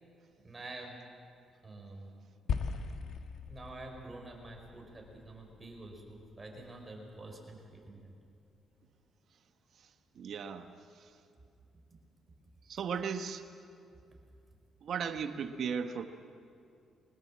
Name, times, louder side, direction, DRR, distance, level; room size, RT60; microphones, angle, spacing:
voice 1, 0.4-1.0 1.6-2.1 3.5-8.1, right 2 dB, 20° right, 1 dB, 5.2 m, -47 dB
sound 1, 2.5-6.9, left 6 dB, 70° left, 1.5 m, -40 dB
voice 2, 10.1-10.7 11.0-11.1 12.7-13.4 14.8-16.1, right 6 dB, 60° right, 8 dB, 1.4 m, -36 dB
22.5 x 19.5 x 7.6 m, 2.5 s
cardioid pair, 90°, 0 cm